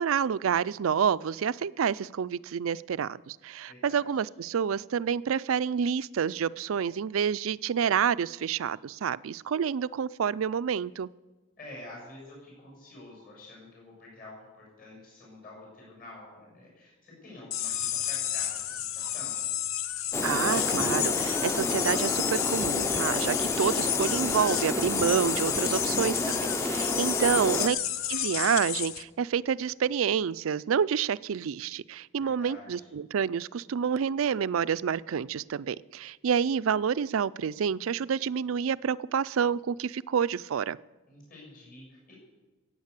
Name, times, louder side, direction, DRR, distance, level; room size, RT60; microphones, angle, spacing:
voice 1, 0.0-11.1 20.2-26.3 26.6-27.8 28.1-40.8, right 7 dB, 85° right, 18 dB, 0.4 m, -28 dB
voice 2, 3.7-4.2 11.6-19.4 32.2-32.9 41.1-42.1, left 2 dB, 45° left, -3 dB, 6.8 m, -48 dB
sound 1, 17.5-29.0, left 11 dB, 85° left, 0.7 m, -31 dB
sound 2, 20.1-27.7, left 1 dB, 15° left, 0.6 m, -30 dB
16.0 x 8.9 x 8.2 m, 1.2 s
head